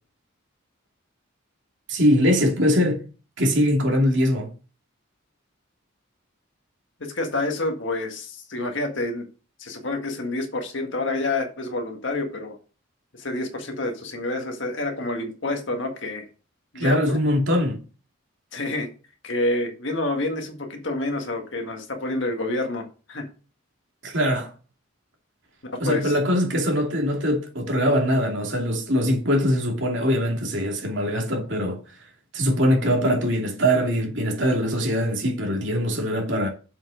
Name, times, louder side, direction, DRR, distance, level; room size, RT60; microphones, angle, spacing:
voice 1, 1.9-3.0 3.4-4.5 16.8-17.8 24.0-24.5 25.8-31.8 32.3-36.5, equal, 60° right, 2.7 m, -22 dB
voice 2, 7.0-9.3 9.6-12.6 13.1-16.2 16.7-17.2 18.5-18.9 19.2-23.3 25.6-26.2, left 2 dB, 60° left, 1.7 m, -28 dB
7.5 x 5.6 x 5.0 m
head